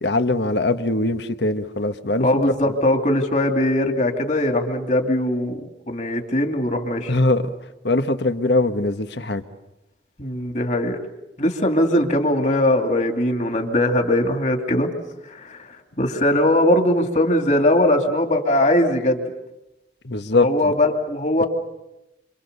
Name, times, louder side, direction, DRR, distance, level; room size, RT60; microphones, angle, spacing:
voice 1, 0.0-2.3 7.1-7.5 7.8-9.4 20.0-20.7, left 2 dB, 75° left, 9 dB, 1.4 m, -21 dB
voice 2, 2.2-7.1 10.2-11.0 11.4-14.9 15.3-15.6 16.0-19.2 20.4-21.5, left 1 dB, 40° left, 4 dB, 2.8 m, -20 dB
28.0 x 27.0 x 6.9 m, 0.93 s
head